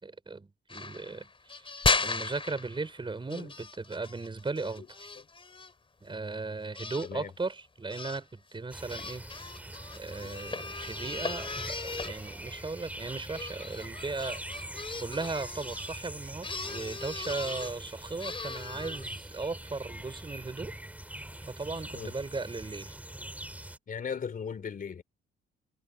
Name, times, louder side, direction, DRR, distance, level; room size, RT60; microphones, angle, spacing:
voice 1, 0.0-1.3 1.5-1.7 2.0-5.1 6.0-9.2 9.9-14.4 15.0-20.7 21.4-22.9, right 3 dB, 25° right, 5.4 m, -37 dB
sound 1, 0.7-3.0 3.3-5.7 6.7-7.1 7.9-8.2 8.9-16.0 16.4-17.7 18.2-19.2, left 4 dB, 25° left, 4.2 m, -36 dB
voice 2, 4.6-4.9 5.2-5.3 7.0-7.3 10.2-10.5 21.9-22.1 23.9-25.0, left 6 dB, 45° left, 3.3 m, -39 dB
sound 2, 8.7-23.8, right 1 dB, 5° right, 3.0 m, -43 dB
cardioid pair, 90°, 20 cm